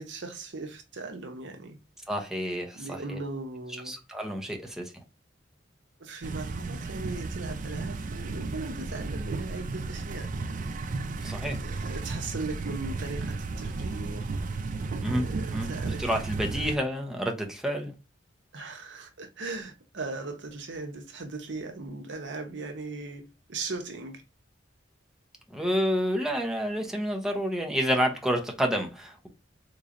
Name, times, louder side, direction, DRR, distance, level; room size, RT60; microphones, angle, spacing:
voice 1, 0.0-1.8 2.7-3.9 6.0-10.7 11.2-14.3 15.1-16.2 16.5-16.7 18.5-23.2 23.5-24.2, right 3 dB, 65° right, 0.8 m, -38 dB
voice 2, 2.1-3.2 3.9-4.9 11.2-11.6 15.0-15.2 15.5-15.7 16.0-17.9 25.5-29.3, equal, 5° right, 0.7 m, -29 dB
sound 1, 6.2-16.8, right 3 dB, 45° right, 0.4 m, -34 dB
3.8 x 3.1 x 2.5 m
head